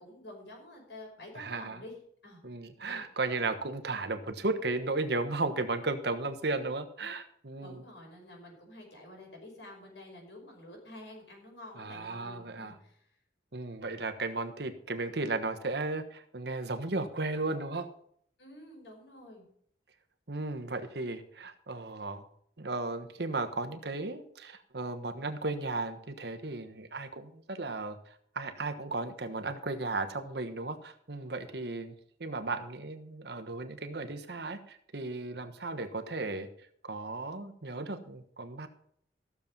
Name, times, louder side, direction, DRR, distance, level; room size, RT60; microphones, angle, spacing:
voice 1, 0.0-2.0 2.2-2.4 2.8-3.0 6.6-6.7 7.6-13.1 18.4-19.5, left 1 dB, 75° left, 0 dB, 5.9 m, -49 dB
voice 2, 1.4-1.8 2.4-7.8 11.8-12.7 13.5-17.9 20.3-22.2 22.6-28.0 28.3-31.9 32.2-36.5 36.8-38.7, right 3 dB, 65° right, 8 dB, 1.2 m, -35 dB
15.0 x 7.2 x 5.3 m, 0.65 s
head